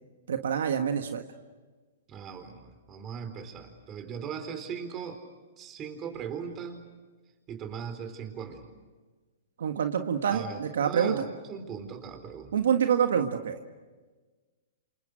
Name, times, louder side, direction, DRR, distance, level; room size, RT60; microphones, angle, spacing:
voice 1, 0.3-1.2 9.6-11.2 12.5-13.6, right 8 dB, 75° right, 6 dB, 1.6 m, -26 dB
voice 2, 2.1-5.2 5.6-6.9 7.5-8.7 10.3-12.5, right 7 dB, 25° right, 7 dB, 4.2 m, -39 dB
28.5 x 28.0 x 6.5 m, 1.3 s
hypercardioid pair, 135°, 0 cm